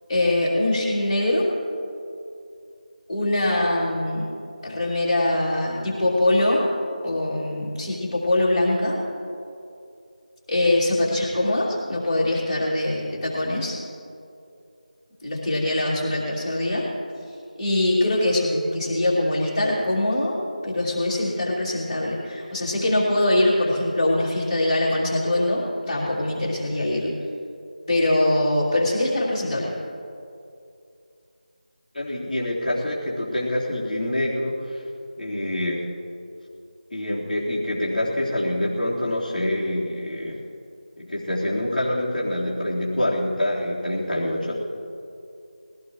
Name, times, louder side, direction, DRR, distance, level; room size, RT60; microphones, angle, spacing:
voice 1, 0.1-1.5 3.1-4.3 4.6-6.6 7.0-9.0 10.5-13.8 15.2-16.9 17.6-20.4 20.6-27.1 27.9-29.7, left 1 dB, 25° left, -8 dB, 2.8 m, -23 dB
voice 2, 31.9-34.8 35.2-35.9 36.9-40.4 41.0-44.6, left 1 dB, 5° left, -19 dB, 2.8 m, -26 dB
21.5 x 17.5 x 3.2 m, 2.6 s
figure-of-eight pair, 170°, 5 cm